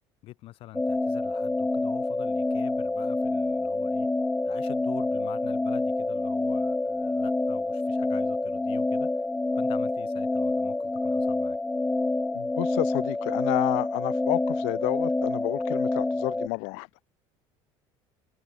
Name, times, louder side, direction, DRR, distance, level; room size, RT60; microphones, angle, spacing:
voice 1, 0.2-4.1 4.4-9.3 9.6-11.6, left 16 dB, 60° left, 7.0 m, -46 dB
sound 1, 0.7-16.5, left 2 dB, 10° left, 0.9 m, -27 dB
voice 2, 12.3-16.9, left 39 dB, 85° left, 1.7 m, -30 dB
cardioid pair, 130°, 11 cm